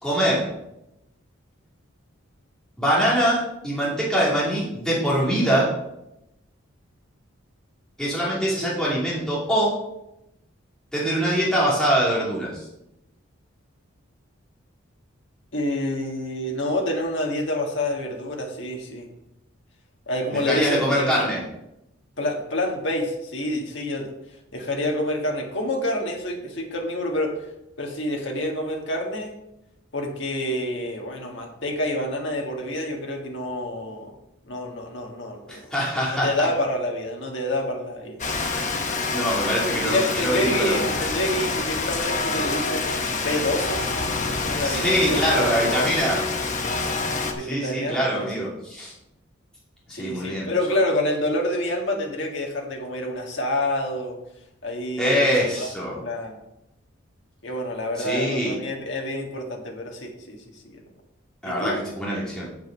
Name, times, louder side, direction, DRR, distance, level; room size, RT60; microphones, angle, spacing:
voice 1, 0.0-0.5 2.8-5.7 8.0-9.8 10.9-12.6 20.3-21.4 35.5-36.5 39.1-40.9 44.6-46.3 47.5-48.9 49.9-50.5 55.0-56.0 58.0-58.6 61.4-62.5, equal, 5° left, -6 dB, 2.7 m, -23 dB
voice 2, 15.5-19.1 20.1-21.2 22.2-24.1 24.5-27.3 27.8-29.3 29.9-34.1 34.5-38.2 39.7-43.8 44.4-46.1 47.3-48.5 49.9-54.2 54.6-55.3 55.6-56.4 57.4-60.4 60.6-60.8 61.4-61.8, left 1 dB, 60° left, 1 dB, 1.8 m, -28 dB
Rain, 38.2-47.3, left 3 dB, 35° left, 1.0 m, -26 dB
7.8 x 7.5 x 5.2 m, 0.86 s
head